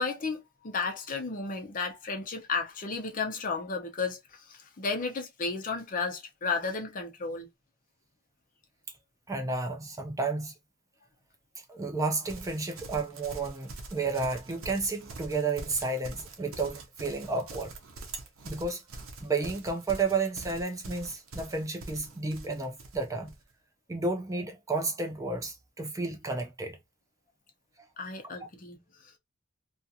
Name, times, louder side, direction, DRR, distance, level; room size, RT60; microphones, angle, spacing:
voice 1, 0.0-7.5 28.0-29.2, left 4 dB, 40° left, 0.6 m, -33 dB
voice 2, 9.3-10.5 11.7-17.7 18.4-18.8 19.2-23.3 23.9-26.8, right 3 dB, 15° right, 0.4 m, -32 dB
Livestock farm animals working animals, 12.2-23.4, right 3 dB, 80° right, 0.6 m, -44 dB
2.4 x 2.4 x 2.6 m
head